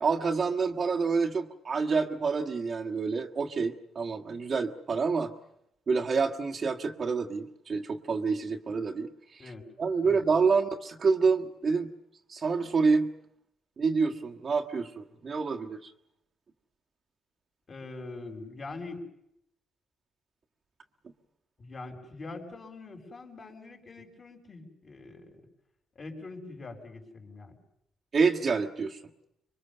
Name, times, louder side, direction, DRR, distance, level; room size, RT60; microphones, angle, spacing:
voice 1, 0.0-5.3 5.9-9.4 9.8-11.9 12.3-13.1 13.8-15.9 28.1-29.0, right 4 dB, 45° right, 1 dB, 1.6 m, -28 dB
voice 2, 17.7-19.0 21.6-25.5 25.9-27.6, left 3 dB, 40° left, 3 dB, 5.1 m, -43 dB
26.0 x 23.0 x 6.8 m, 0.79 s
cardioid pair, 90°, 0 cm